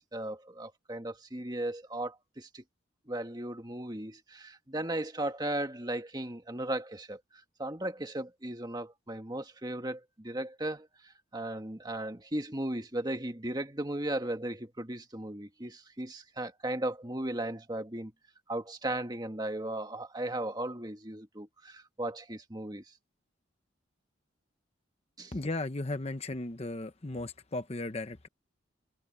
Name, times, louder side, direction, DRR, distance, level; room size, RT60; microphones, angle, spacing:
voice 1, 0.0-2.6 3.1-7.2 7.6-18.1 18.5-22.8 25.2-25.3, right 1 dB, 20° right, 1.7 m, -36 dB
voice 2, 25.3-28.3, left 2 dB, 30° left, 0.9 m, -36 dB
head